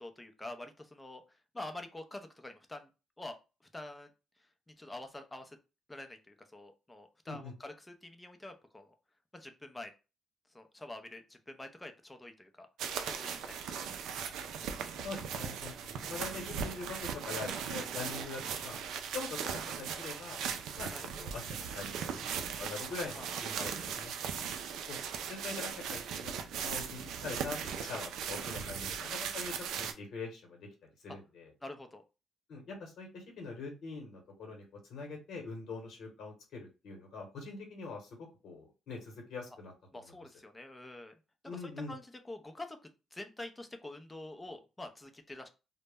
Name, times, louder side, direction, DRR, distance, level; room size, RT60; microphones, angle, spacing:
voice 1, 0.0-2.9 3.2-3.4 3.7-4.1 4.4-5.6 5.9-8.9 9.3-9.9 10.5-12.7 13.0-13.9 14.6-14.9 20.9-21.0 23.2-23.3 23.6-24.0 28.7-29.1 31.6-32.0 39.9-41.1 41.4-45.5, left 2 dB, 15° left, 6 dB, 0.5 m, -47 dB
sound 1, 12.8-29.9, right 7 dB, 85° right, 0.3 m, -38 dB
voice 2, 15.0-18.8 19.1-20.4 20.8-20.9 21.2-24.5 24.9-31.5 32.5-39.7 41.5-41.9, left 4 dB, 70° left, 1 dB, 0.9 m, -44 dB
2.1 x 2.1 x 3.3 m, 0.30 s
cardioid pair, 90°, 0 cm